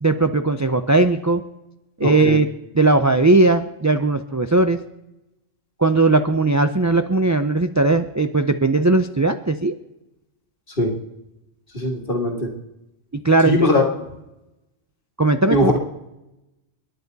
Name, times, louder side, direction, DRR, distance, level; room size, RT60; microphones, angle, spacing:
voice 1, 0.0-1.4 2.0-2.5 2.7-4.8 5.8-9.7 13.2-13.7 15.2-15.8, right 2 dB, 25° right, 8 dB, 0.3 m, -18 dB
voice 2, 2.0-2.4 10.8-10.9 11.7-12.5 13.4-13.8 15.5-15.8, left 1 dB, 45° left, 1 dB, 2.3 m, -20 dB
30.0 x 10.5 x 4.1 m, 0.95 s
omnidirectional pair, 1.3 m